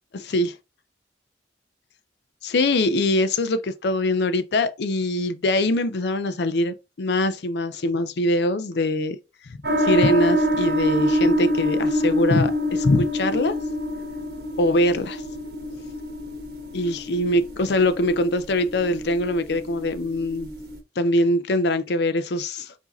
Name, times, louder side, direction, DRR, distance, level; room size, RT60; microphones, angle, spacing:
voice 1, 0.1-0.5 2.4-9.2 9.4-13.6 14.6-15.2 16.7-20.5 21.0-22.7, left 1 dB, 70° left, 0.5 m, -23 dB
sound 1, 9.6-20.8, equal, 60° right, 1.3 m, -26 dB
4.7 x 2.7 x 4.1 m
head